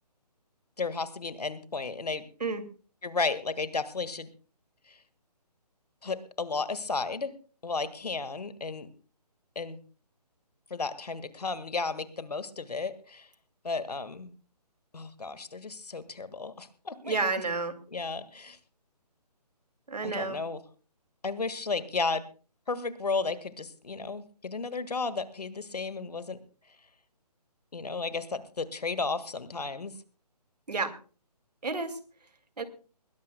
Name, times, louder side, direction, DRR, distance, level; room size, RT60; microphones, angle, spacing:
voice 1, 0.8-2.2 3.0-4.3 4.9-5.0 6.0-7.3 7.6-8.9 9.5-9.8 10.7-13.3 13.6-14.3 14.9-17.2 17.9-18.6 20.0-20.6 21.2-22.2 22.7-26.4 27.7-29.9, left 4 dB, 65° left, 14 dB, 1.7 m, -33 dB
voice 2, 17.0-17.7 19.9-20.4 30.7-30.9 31.6-31.9 32.6-32.7, right 4 dB, 70° right, 10 dB, 2.4 m, -30 dB
21.0 x 17.5 x 2.2 m, 0.38 s
figure-of-eight pair, 145°, 21 cm